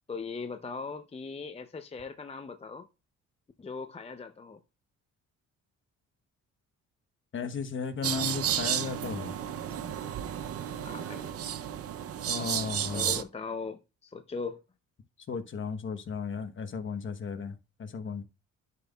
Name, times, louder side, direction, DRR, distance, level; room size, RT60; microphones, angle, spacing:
voice 1, 0.1-2.9 3.6-4.6 10.8-11.3 12.9-14.6, left 4 dB, 20° left, 0.6 m, -39 dB
voice 2, 7.3-9.3 12.3-13.1 15.3-18.2, left 5 dB, 40° left, 1.0 m, -35 dB
sound 1, 8.0-13.2, right 10 dB, 50° right, 0.6 m, -32 dB
11.0 x 5.5 x 2.3 m
cardioid pair, 90°, 30 cm